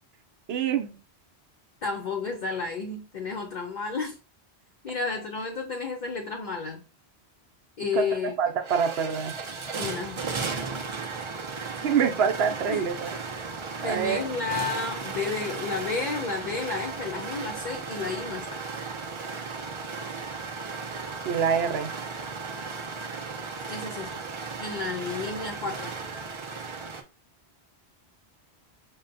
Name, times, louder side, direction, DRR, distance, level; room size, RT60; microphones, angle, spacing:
voice 1, 0.5-1.0 7.9-8.1 8.4-9.3 11.8-13.2 13.8-14.2 21.2-21.9, right 7 dB, 70° right, 0.8 m, -25 dB
voice 2, 1.8-4.2 4.8-6.8 7.8-8.3 9.8-10.2 12.7-12.9 13.8-18.6 23.7-24.2 24.6-25.9, left 4 dB, 50° left, 0.6 m, -32 dB
sound 1, 8.1-8.2 8.5-27.0, right 4 dB, 40° right, 0.4 m, -35 dB
5.4 x 2.2 x 2.5 m
omnidirectional pair, 1.1 m